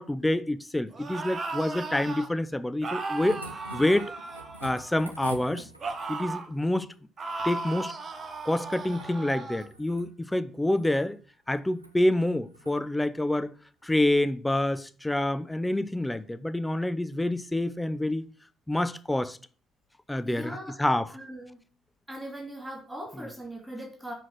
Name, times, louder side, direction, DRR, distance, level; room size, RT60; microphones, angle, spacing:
voice 1, 0.0-4.1 4.6-5.7 6.1-6.9 7.4-7.9 8.5-11.2 11.5-13.5 13.8-18.3 18.7-19.4 20.1-21.1, left 1 dB, 10° left, 0.5 m, -27 dB
sound 1, 0.9-2.3 2.8-5.1 5.8-6.5 7.2-9.7, right 3 dB, 35° right, 1.1 m, -36 dB
sound 2, 2.9-6.2 8.1-9.1 9.5-10.1 10.6-11.1 11.7-11.9 12.5-12.8 14.1-14.2, right 1 dB, 85° right, 0.5 m, -46 dB
voice 2, 20.2-20.8 21.1-21.6 22.1-24.1, right 1 dB, 10° right, 2.4 m, -40 dB
5.8 x 4.9 x 6.4 m
figure-of-eight pair, 50°, 0 cm